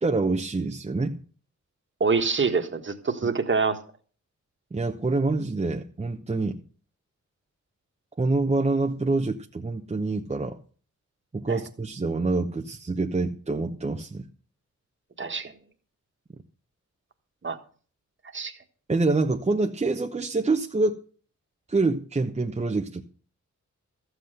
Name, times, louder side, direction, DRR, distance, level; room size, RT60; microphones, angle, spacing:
voice 1, 0.0-1.2 4.7-6.6 8.2-10.6 11.3-14.2 18.9-21.0 21.7-23.0, right 3 dB, 20° right, 0.8 m, -26 dB
voice 2, 2.0-3.8 11.5-11.6 15.2-15.5 17.4-17.6 18.3-18.5, right 4 dB, 40° right, 1.6 m, -25 dB
14.0 x 7.9 x 6.6 m
wide cardioid pair, 110°, 29 cm